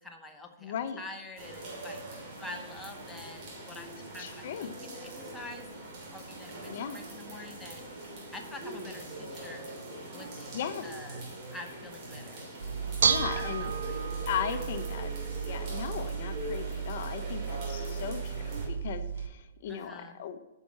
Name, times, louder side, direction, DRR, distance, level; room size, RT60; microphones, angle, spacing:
voice 1, 0.0-5.7 6.1-7.8 8.3-10.5 10.8-11.2 11.5-12.5 13.2-14.0 19.7-20.2, left 2 dB, 5° left, 1 dB, 0.9 m, -46 dB
voice 2, 0.6-1.0 4.2-4.7 6.7-7.0 10.5-10.9 13.0-13.7 14.3-15.1 15.4-20.4, left 8 dB, 50° left, 9 dB, 0.7 m, -37 dB
sound 1, 1.4-18.7, right 1 dB, 35° right, 2.9 m, -42 dB
Bell / Dishes pots and pans, 12.6-19.3, right 6 dB, 75° right, 0.8 m, -33 dB
9.1 x 5.7 x 4.2 m, 1.1 s
hypercardioid pair, 155°, 0 cm